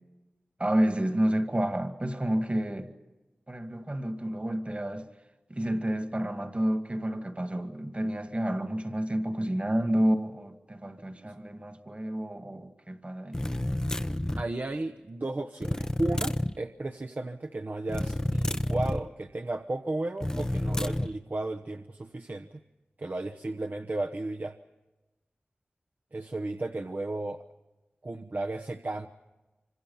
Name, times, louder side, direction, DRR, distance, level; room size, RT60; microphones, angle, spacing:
voice 1, 0.6-2.9 3.5-5.1 5.5-13.4, right 1 dB, 35° right, 2.1 m, -30 dB
sound 1, 13.3-14.5 15.6-16.5 17.9-19.1 20.2-21.1, left 1 dB, 15° left, 0.8 m, -29 dB
voice 2, 14.4-22.6 23.0-24.6 26.1-27.4 28.0-29.1, right 2 dB, 50° right, 1.0 m, -34 dB
26.0 x 25.5 x 5.7 m
wide cardioid pair, 55°, 4 cm